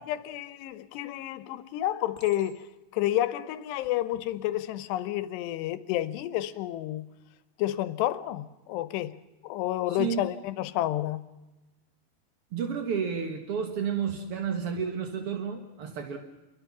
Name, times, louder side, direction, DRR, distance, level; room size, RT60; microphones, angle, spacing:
voice 1, 0.0-2.6 2.9-7.1 7.6-9.2 9.4-11.2, left 13 dB, 85° left, 3.0 m, -30 dB
Chink clink, 0.7-1.2 2.1-2.9 3.7-4.0, equal, 30° left, 0.9 m, -54 dB
voice 2, 9.9-10.2 12.5-16.2, right 7 dB, 60° right, 1.6 m, -31 dB
28.0 x 23.0 x 6.1 m
omnidirectional pair, 4.8 m